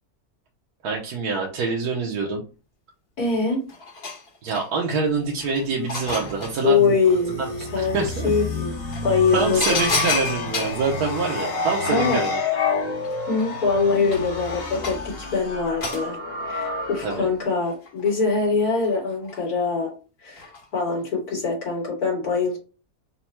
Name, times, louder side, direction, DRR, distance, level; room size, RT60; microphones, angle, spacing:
voice 1, 0.8-2.4 4.4-7.0 7.3-7.5 7.8-8.3 9.3-12.4 17.0-17.3, right 4 dB, 85° right, -1 dB, 1.4 m, -25 dB
voice 2, 3.2-3.6 6.6-7.4 7.7-8.7 9.0-9.9 11.9-12.2 13.3-16.2 16.4-19.9 20.2-22.6, left 4 dB, 85° left, -4 dB, 2.7 m, -23 dB
sound 1, 3.3-3.4 3.7-4.9 5.4-6.6 8.3-8.4 8.9-10.9 12.5-12.6 12.8-15.2 15.8-16.1 17.6-18.3 18.8-19.4 20.4-20.6 21.0-21.1, left 4 dB, 45° left, 1.2 m, -30 dB
sound 2, 5.0-17.4, left 3 dB, 60° left, 1.4 m, -30 dB
5.6 x 2.1 x 4.4 m, 0.34 s
omnidirectional pair, 1.6 m